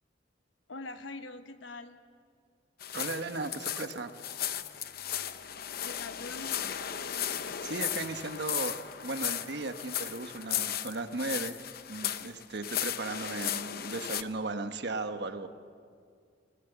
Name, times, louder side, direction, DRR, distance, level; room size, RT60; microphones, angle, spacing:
voice 1, 0.7-2.0 5.8-6.8, left 3 dB, 90° left, 9 dB, 1.1 m, -43 dB
sound 1, 2.8-14.2, left 10 dB, 55° left, 0.7 m, -35 dB
voice 2, 2.9-4.1 7.6-8.7 9.0-11.6 11.9-15.5, right 3 dB, 60° right, 8 dB, 1.1 m, -36 dB
sound 2, 4.4-14.4, equal, 15° right, 5.3 m, -65 dB
20.5 x 18.5 x 8.0 m, 2.2 s
head